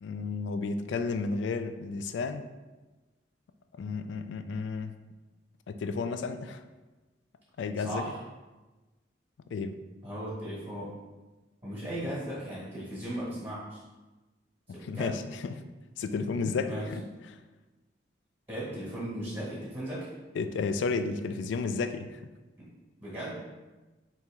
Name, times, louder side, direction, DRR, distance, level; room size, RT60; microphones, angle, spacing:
voice 1, 0.0-2.4 3.8-4.9 5.7-6.6 7.6-8.1 9.5-9.8 14.9-15.6 16.0-17.0 20.4-22.2, left 4 dB, 85° left, 9 dB, 0.3 m, -32 dB
voice 2, 7.8-8.2 10.0-10.9 11.6-13.8 14.7-15.2 16.6-16.9 18.5-20.1 22.6-22.7 23.0-23.4, right 1 dB, 15° right, -9 dB, 1.4 m, -37 dB
4.6 x 2.8 x 3.5 m, 1.2 s
head